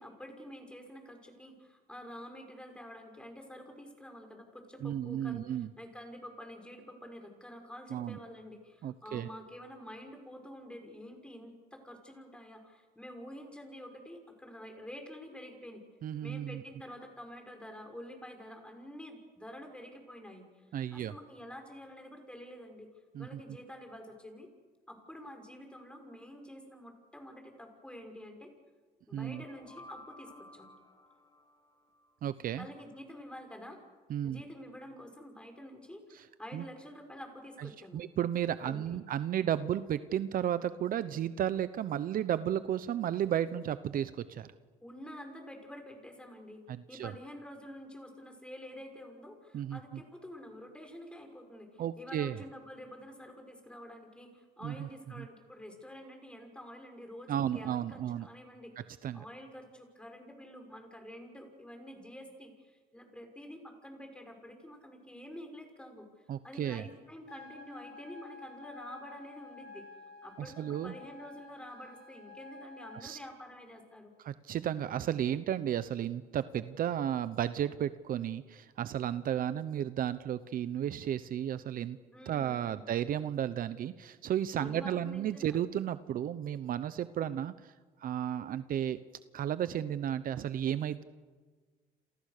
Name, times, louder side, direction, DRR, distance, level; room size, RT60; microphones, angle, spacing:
voice 1, 0.0-15.8 16.2-22.9 23.2-24.5 24.9-28.5 29.1-30.7 32.6-33.8 34.2-38.0 38.6-39.0 44.8-58.9 59.1-69.8 70.2-74.1 82.1-82.8 84.6-85.6, equal, 5° left, 4 dB, 5.9 m, -48 dB
voice 2, 4.8-5.7 7.9-8.2 8.8-9.3 16.0-16.6 20.7-21.1 23.1-23.4 29.1-29.4 32.2-32.7 34.1-34.4 36.5-36.6 37.6-44.5 46.7-47.1 49.5-49.8 51.8-52.4 54.6-54.9 55.2-55.3 57.3-58.3 59.0-59.2 66.3-66.9 70.4-70.9 72.9-73.2 74.2-82.0 82.3-87.7 88.0-89.0 89.3-91.0, right 10 dB, 55° right, 13 dB, 0.9 m, -33 dB
sound 1, 29.1-32.1, left 1 dB, 20° left, 2.2 m, -54 dB
sound 2, 67.3-73.3, left 4 dB, 75° left, 7.9 m, -51 dB
28.5 x 28.0 x 6.7 m, 1.4 s
cardioid pair, 110°, 17 cm